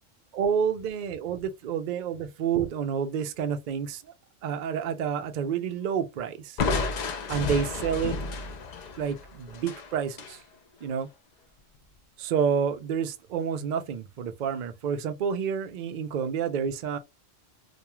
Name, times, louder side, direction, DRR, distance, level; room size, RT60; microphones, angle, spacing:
voice 1, 0.3-4.0 4.4-6.6 7.3-8.2 9.0-10.4 10.8-11.1 12.2-17.0, right 7 dB, 65° right, 0.4 m, -29 dB
Crushing, 6.6-10.4, left 4 dB, 90° left, 0.3 m, -31 dB
2.4 x 2.3 x 2.9 m
omnidirectional pair, 1.3 m